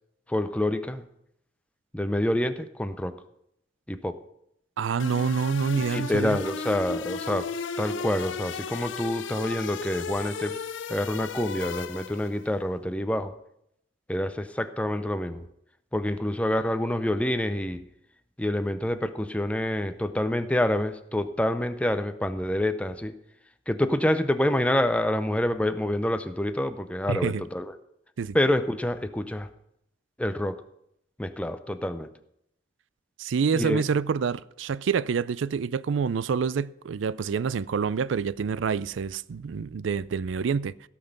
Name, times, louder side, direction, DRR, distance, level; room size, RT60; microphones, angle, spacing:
voice 1, 0.3-1.1 1.9-3.2 3.9-4.2 5.7-7.5 7.8-10.6 10.9-13.3 14.1-15.5 15.9-17.8 18.4-23.1 23.7-27.8 28.3-29.5 30.2-30.6 31.2-32.1 33.5-33.8, left 1 dB, 5° left, 0.5 m, -27 dB
voice 2, 4.8-6.4 27.1-27.4 28.2-28.4 33.2-40.7, right 6 dB, 80° right, 0.4 m, -27 dB
sound 1, 5.0-12.4, left 5 dB, 75° left, 0.5 m, -35 dB
16.5 x 5.9 x 6.6 m
head